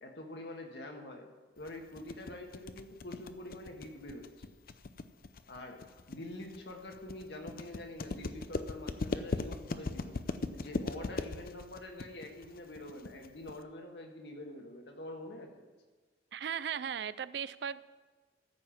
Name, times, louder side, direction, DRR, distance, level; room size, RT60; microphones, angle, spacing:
voice 1, 0.0-1.3 1.6-4.5 5.5-15.6, left 1 dB, 75° left, 2 dB, 1.7 m, -46 dB
sound 1, 1.7-13.6, left 3 dB, 55° left, 0.5 m, -39 dB
voice 2, 16.3-17.8, right 8 dB, 70° right, 17 dB, 0.4 m, -37 dB
14.0 x 5.6 x 7.1 m, 1.3 s
head